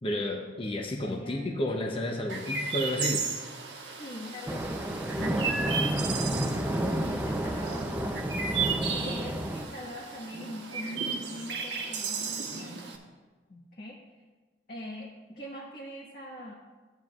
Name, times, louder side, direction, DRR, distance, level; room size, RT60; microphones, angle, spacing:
voice 1, 0.0-3.3 6.4-6.6, left 1 dB, 30° left, 1 dB, 0.7 m, -31 dB
voice 2, 1.0-1.6 4.0-8.5 8.9-13.0 13.5-14.2 14.7-16.5, left 1 dB, 50° left, -4 dB, 1.3 m, -42 dB
Chirp tweet, 2.3-13.0, right 5 dB, 70° right, 1.2 m, -35 dB
sound 1, 4.5-9.7, right 1 dB, 10° right, 0.5 m, -30 dB
14.5 x 9.0 x 2.4 m, 1.3 s
head